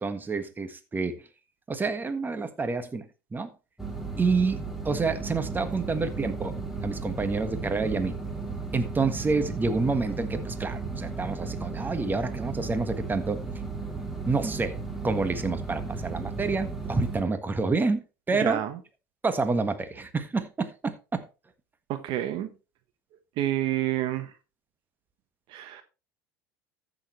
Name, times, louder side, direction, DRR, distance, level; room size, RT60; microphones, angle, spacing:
voice 1, 0.0-1.2 1.7-3.1 3.3-3.5 4.2-6.5 6.8-8.1 8.7-13.4 14.3-14.8 15.0-18.6 19.2-21.2, right 3 dB, 20° right, 1.5 m, -28 dB
sound 1, 3.8-17.2, right 4 dB, 5° right, 2.7 m, -35 dB
voice 2, 21.9-22.5 23.4-24.3 25.5-25.8, right 13 dB, 55° right, 1.2 m, -28 dB
14.0 x 6.7 x 3.2 m
hypercardioid pair, 85°, 10 cm